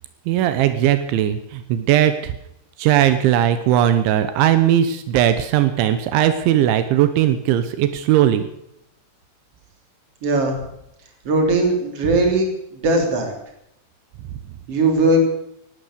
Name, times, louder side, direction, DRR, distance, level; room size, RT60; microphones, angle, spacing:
voice 1, 0.3-2.3 2.8-8.4, right 11 dB, 85° right, 10 dB, 3.3 m, -18 dB
voice 2, 10.2-10.6 11.2-13.3 14.7-15.2, right 2 dB, 35° right, 3 dB, 3.7 m, -19 dB
18.0 x 12.0 x 6.7 m, 0.78 s
omnidirectional pair, 5.4 m